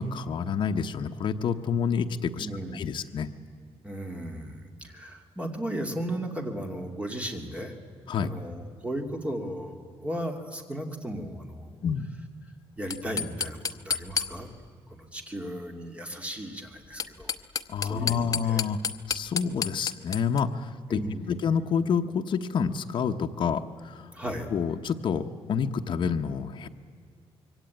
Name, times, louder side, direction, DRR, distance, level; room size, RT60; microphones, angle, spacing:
voice 1, 0.0-3.3 8.1-8.3 11.8-12.1 17.7-18.8 19.1-21.0 21.3-24.1 24.5-26.7, left 6 dB, 55° left, 4 dB, 1.0 m, -28 dB
voice 2, 2.4-3.0 3.8-7.7 8.2-11.8 12.8-14.5 14.9-17.3 17.8-18.6 20.9-21.2 24.1-24.5, right 1 dB, 10° right, 4 dB, 2.7 m, -36 dB
sound 1, 12.8-14.7 16.8-20.4, left 6 dB, 35° left, 0.9 m, -32 dB
26.0 x 23.5 x 9.3 m, 2.1 s
wide cardioid pair, 165°, 10 cm